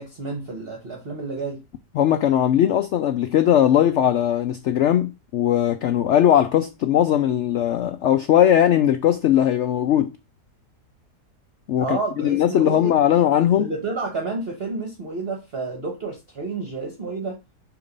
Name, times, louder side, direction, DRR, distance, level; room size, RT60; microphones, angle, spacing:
voice 1, 0.0-1.6 11.8-13.2 13.6-17.4, right 3 dB, 40° right, 1.2 m, -30 dB
voice 2, 1.9-10.1 11.7-13.7, left 10 dB, 80° left, 0.6 m, -19 dB
6.9 x 3.0 x 5.2 m
omnidirectional pair, 1.7 m